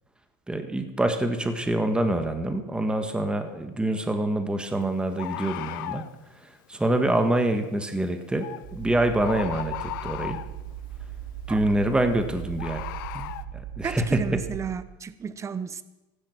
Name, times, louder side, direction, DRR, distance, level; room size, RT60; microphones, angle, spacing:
voice 1, 0.5-6.1 6.4-10.4 11.5-12.9 13.1-14.4, right 1 dB, 10° right, 7 dB, 1.8 m, -26 dB
Bird, 3.5-3.6 5.2-6.1 8.4-8.6 9.2-10.6 12.6-13.4, left 15 dB, 75° left, 0.7 m, -35 dB
sound 1, 8.6-14.7, right 10 dB, 70° right, 5.8 m, -38 dB
voice 2, 13.8-15.8, right 6 dB, 25° right, 14 dB, 1.0 m, -33 dB
15.5 x 12.0 x 6.1 m, 1.0 s
hypercardioid pair, 95°, 11 cm